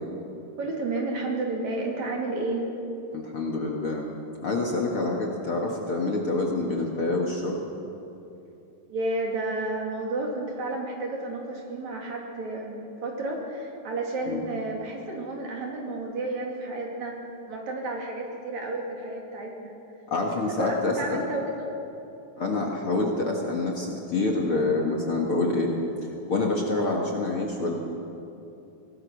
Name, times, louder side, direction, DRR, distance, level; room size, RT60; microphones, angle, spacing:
voice 1, 0.6-2.7 8.9-17.1 17.5-19.7 20.6-21.7, right 2 dB, 55° right, 0 dB, 3.7 m, -31 dB
voice 2, 3.1-4.1 4.4-7.7 14.3-14.4 20.1-21.2 22.4-25.7 26.3-27.7, left 2 dB, 45° left, 0 dB, 2.1 m, -27 dB
24.0 x 17.5 x 6.5 m, 2.8 s
omnidirectional pair, 4.1 m